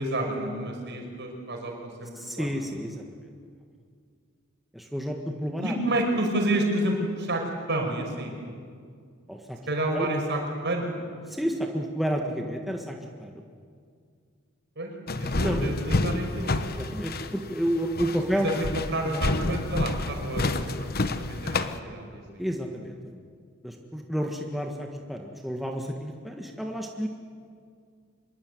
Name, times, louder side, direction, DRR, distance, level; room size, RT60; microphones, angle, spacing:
voice 1, 0.0-1.7 2.0-2.5 5.6-8.3 9.7-10.9 14.8-16.7 18.3-20.5 20.8-22.4, right 1 dB, 55° right, 2 dB, 5.7 m, -30 dB
voice 2, 2.2-3.3 4.7-5.7 9.3-9.6 9.9-10.1 11.3-13.4 15.4-15.6 16.8-18.5 19.0-19.3 22.4-23.0 23.6-27.1, equal, ahead, 1 dB, 1.6 m, -30 dB
sound 1, 15.1-21.8, left 2 dB, 45° left, 1.1 m, -29 dB
25.5 x 22.5 x 9.5 m, 2.1 s
head